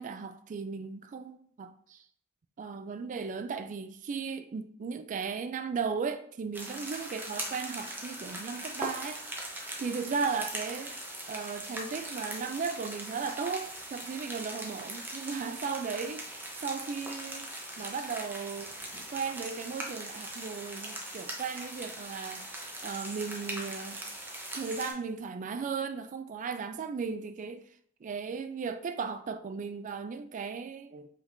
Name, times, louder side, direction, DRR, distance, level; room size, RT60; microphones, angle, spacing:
voice 1, 0.0-2.0 2.6-9.2 9.8-11.0 11.3-17.5 17.8-24.0 24.5-27.7 28.0-31.1, right 5 dB, 35° right, 0.3 m, -36 dB
sound 1, 6.5-24.9, right 1 dB, 10° right, 0.7 m, -40 dB
5.0 x 3.5 x 2.6 m
head